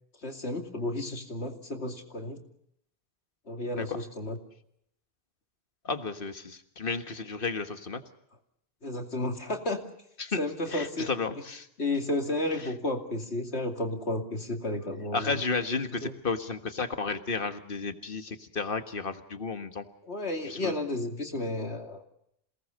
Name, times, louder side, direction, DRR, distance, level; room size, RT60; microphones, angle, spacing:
voice 1, 0.2-2.4 3.5-4.4 8.8-9.8 10.4-11.1 11.8-15.4 16.0-16.1 20.0-22.0, left 2 dB, 85° left, 4 dB, 2.9 m, -32 dB
voice 2, 5.9-8.0 10.2-10.4 10.7-11.7 15.1-19.8 20.4-20.7, left 4 dB, 55° left, 8 dB, 1.8 m, -32 dB
28.0 x 18.5 x 6.6 m, 0.75 s
omnidirectional pair, 1.1 m